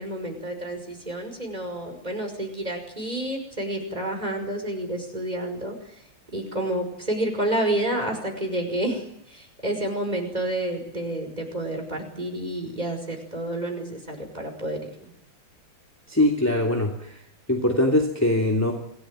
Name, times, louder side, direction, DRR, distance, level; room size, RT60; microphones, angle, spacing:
voice 1, 0.0-5.8 6.3-14.9, right 1 dB, 15° right, 3 dB, 5.7 m, -29 dB
voice 2, 16.1-17.2 17.5-18.7, left 1 dB, 5° left, 1 dB, 2.8 m, -22 dB
27.5 x 18.0 x 9.1 m, 0.77 s
omnidirectional pair, 2.4 m